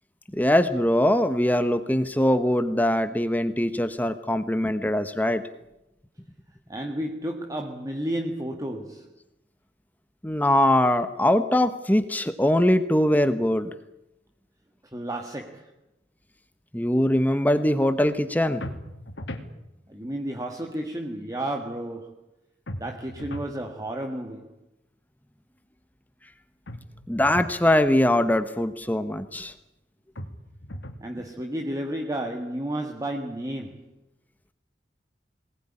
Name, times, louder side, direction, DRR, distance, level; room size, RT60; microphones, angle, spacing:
voice 1, 0.3-5.4 10.2-13.7 16.7-18.6 27.1-29.5, left 1 dB, 10° left, 1.1 m, -22 dB
voice 2, 6.7-9.1 14.9-15.7 19.9-22.2 22.8-24.5 31.0-33.9, right 1 dB, 20° right, 1.7 m, -32 dB
sound 1, 18.6-19.5 22.7-23.6 26.7-27.6 30.2-31.1, left 1 dB, 85° left, 2.6 m, -38 dB
23.0 x 19.5 x 10.0 m
head